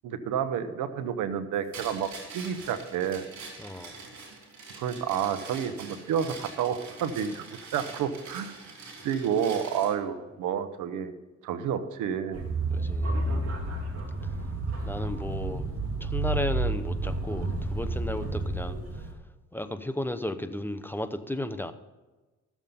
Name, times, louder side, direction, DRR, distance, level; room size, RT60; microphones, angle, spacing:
voice 1, 0.0-3.3 4.8-8.5 9.0-11.1 11.4-12.4, right 8 dB, 90° right, 11 dB, 0.9 m, -30 dB
sound 1, 1.7-10.0, right 4 dB, 65° right, 3.4 m, -44 dB
voice 2, 3.6-4.0 12.7-13.1 14.8-15.7 16.0-18.8 19.5-21.7, left 1 dB, 5° left, 10 dB, 0.6 m, -34 dB
sound 2, 12.3-19.1, right 2 dB, 50° right, 2.5 m, -30 dB
13.5 x 7.3 x 5.4 m, 1.2 s
cardioid pair, 90°, 30 cm